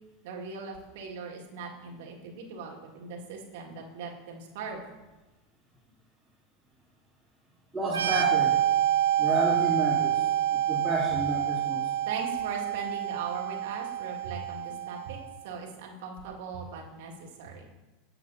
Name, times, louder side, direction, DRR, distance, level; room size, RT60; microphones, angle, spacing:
voice 1, 0.2-4.8 12.1-15.2 15.4-17.7, right 4 dB, 65° right, 0 dB, 1.8 m, -40 dB
voice 2, 7.7-8.6 9.2-10.3 10.5-11.8, right 1 dB, 10° right, -9 dB, 2.5 m, -30 dB
sound 1, 7.9-15.4, right 11 dB, 80° right, 0.9 m, -27 dB
15.5 x 5.8 x 2.7 m, 1.1 s
hypercardioid pair, 85°, 0 cm